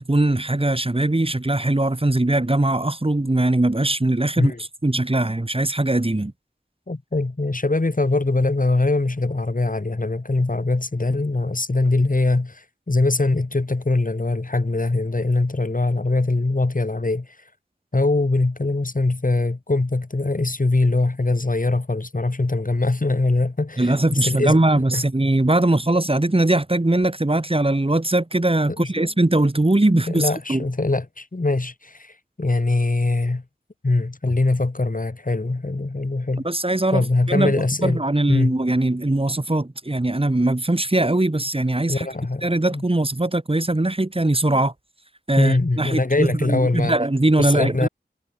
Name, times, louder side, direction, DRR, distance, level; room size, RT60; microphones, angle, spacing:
voice 1, 0.0-4.5 4.8-6.3 23.8-30.6 36.4-37.5 37.8-42.1 42.4-44.7 45.3-47.9, right 2 dB, 30° right, 3.4 m, -21 dB
voice 2, 6.9-17.3 17.9-24.6 24.9-25.0 28.8-29.1 30.1-33.4 33.8-36.5 36.9-38.0 38.3-38.6 41.9-42.4 42.7-42.9 44.5-44.6 45.4-47.0 47.4-47.9, left 2 dB, 50° left, 3.9 m, -22 dB
wide cardioid pair, 55°, 18 cm